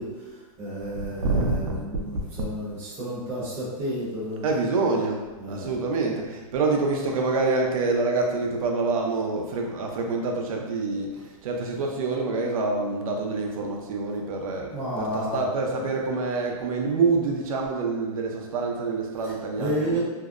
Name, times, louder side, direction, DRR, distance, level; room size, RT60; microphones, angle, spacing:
voice 1, 0.0-4.4 5.4-5.7 14.7-15.4 19.2-19.3 19.6-20.0, right 1 dB, 15° right, -10 dB, 0.7 m, -31 dB
voice 2, 1.0-1.8 2.4-2.5 4.4-5.2 5.5-11.1 11.4-20.0, right 3 dB, 70° right, 1 dB, 0.5 m, -26 dB
2.6 x 2.0 x 2.4 m, 1.2 s
hypercardioid pair, 160°, 19 cm